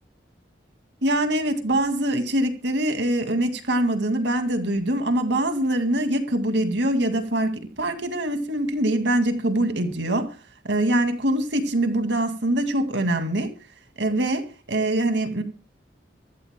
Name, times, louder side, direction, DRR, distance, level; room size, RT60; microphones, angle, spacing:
voice 1, 1.0-10.3 10.6-13.5 14.0-15.4, right 1 dB, 80° right, 2.3 m, -23 dB
24.0 x 14.0 x 2.2 m
head